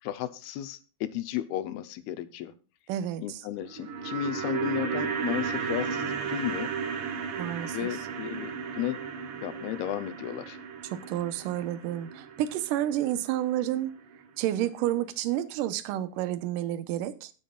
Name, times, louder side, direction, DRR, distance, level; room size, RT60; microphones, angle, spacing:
voice 1, 0.0-2.5 3.2-6.7 7.7-9.0 9.4-10.6, left 12 dB, 80° left, 13 dB, 2.7 m, -34 dB
voice 2, 2.9-3.4 7.4-7.8 10.9-13.9 14.4-17.3, right 12 dB, 70° right, 10 dB, 2.2 m, -30 dB
sound 1, 3.6-13.9 14.1-14.2, right 6 dB, 90° right, 1.2 m, -34 dB
21.5 x 7.2 x 2.4 m, 0.33 s
omnidirectional pair, 4.5 m